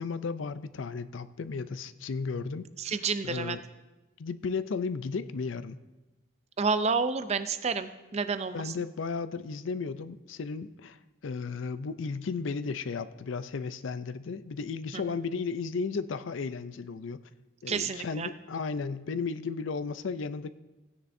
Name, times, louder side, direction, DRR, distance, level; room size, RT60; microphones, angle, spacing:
voice 1, 0.0-2.7 3.2-3.6 4.2-5.8 8.5-17.2 17.6-20.6, left 4 dB, 65° left, 13 dB, 0.4 m, -34 dB
voice 2, 2.8-3.6 6.6-8.7 14.9-15.0 17.7-18.3, right 4 dB, 30° right, 11 dB, 0.4 m, -30 dB
16.5 x 9.7 x 2.6 m, 1.1 s
head